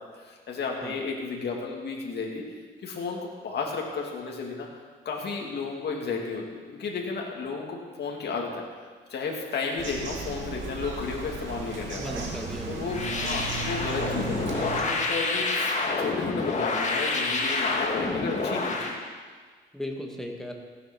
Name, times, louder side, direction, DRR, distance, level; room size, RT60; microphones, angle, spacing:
voice 1, 0.1-2.4 2.8-4.7 5.0-8.6 9.1-12.0 12.7-19.0, left 4 dB, 55° left, -1 dB, 2.2 m, -33 dB
Bird vocalization bird call bird song, 9.8-14.8, right 3 dB, 70° right, 2.5 m, -35 dB
voice 2, 12.0-13.3 19.7-20.5, left 1 dB, ahead, 1 dB, 2.0 m, -37 dB
sound 1, 12.9-19.0, left 3 dB, 35° left, 2.0 m, -28 dB
15.5 x 8.0 x 6.0 m, 1.5 s
cardioid pair, 90°, 20 cm